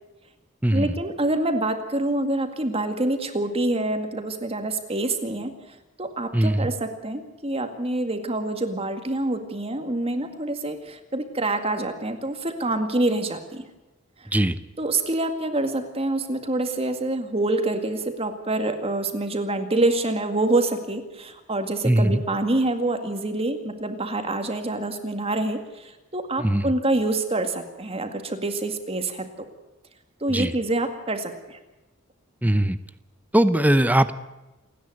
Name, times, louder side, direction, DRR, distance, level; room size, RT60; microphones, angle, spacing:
voice 1, 0.7-5.5 6.0-13.6 14.8-29.3 30.2-31.6, right 2 dB, 30° right, 7 dB, 2.1 m, -26 dB
voice 2, 6.3-6.7 14.3-14.6 21.8-22.2 26.4-26.7 30.3-30.5 32.4-32.8 33.3-34.1, right 1 dB, 10° right, 12 dB, 0.7 m, -20 dB
29.0 x 10.0 x 9.4 m, 1.0 s
head